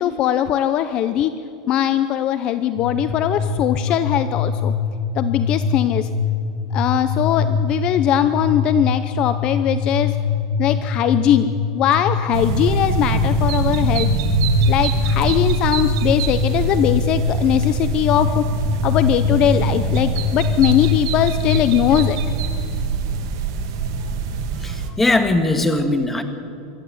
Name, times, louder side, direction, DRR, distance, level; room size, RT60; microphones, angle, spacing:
voice 1, 0.0-1.3 1.7-4.7 5.1-6.1 6.7-10.2 10.6-14.1 14.7-18.4 18.8-22.2, left 11 dB, 40° left, 12 dB, 0.8 m, -20 dB
sound 1, 2.8-22.3, left 5 dB, 75° left, 3.1 m, -23 dB
sound 2, 12.3-24.9, right 5 dB, 70° right, 2.4 m, -24 dB
voice 2, 24.6-26.2, left 2 dB, 10° left, 7 dB, 1.8 m, -19 dB
24.5 x 14.0 x 9.4 m, 2.6 s
supercardioid pair, 145°, 2 cm